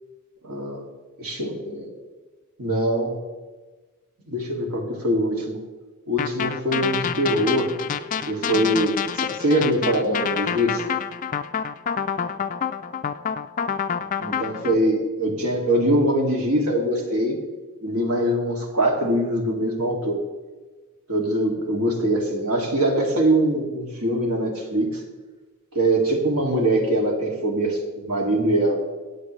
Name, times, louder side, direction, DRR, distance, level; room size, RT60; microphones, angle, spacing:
voice 1, 0.4-0.8 1.2-1.9 2.6-3.2 4.3-5.6 6.1-7.7 8.3-10.8 14.2-17.4 17.8-20.2 21.1-25.0 25.7-28.8, right 1 dB, 80° right, 0 dB, 2.5 m, -23 dB
sound 1, 6.2-14.7, left 7 dB, 35° left, 0.4 m, -27 dB
22.0 x 8.1 x 3.2 m, 1.3 s
head